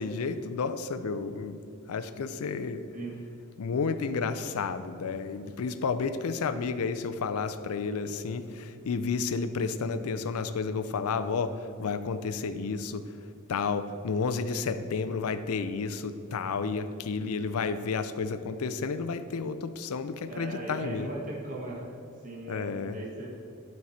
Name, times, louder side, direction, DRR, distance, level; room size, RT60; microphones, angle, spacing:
voice 1, 0.0-1.6 1.9-2.8 3.6-11.5 11.8-13.0 13.5-21.1 22.5-23.0, left 5 dB, 80° left, 11 dB, 0.5 m, -31 dB
voice 2, 20.2-21.9 22.2-23.3, right 2 dB, 35° right, -4 dB, 1.0 m, -38 dB
11.5 x 4.6 x 4.2 m, 2.7 s
head